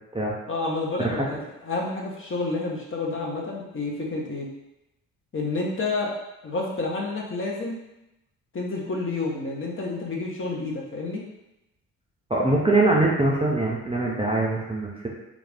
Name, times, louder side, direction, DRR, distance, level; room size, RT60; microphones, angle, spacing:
voice 1, 0.5-4.5 5.3-6.1 6.4-7.8 8.5-11.2, left 3 dB, 30° left, -2 dB, 0.8 m, -29 dB
voice 2, 12.3-15.1, right 2 dB, 15° right, -4 dB, 0.6 m, -23 dB
2.4 x 2.3 x 3.5 m, 0.91 s
hypercardioid pair, 45°, 43 cm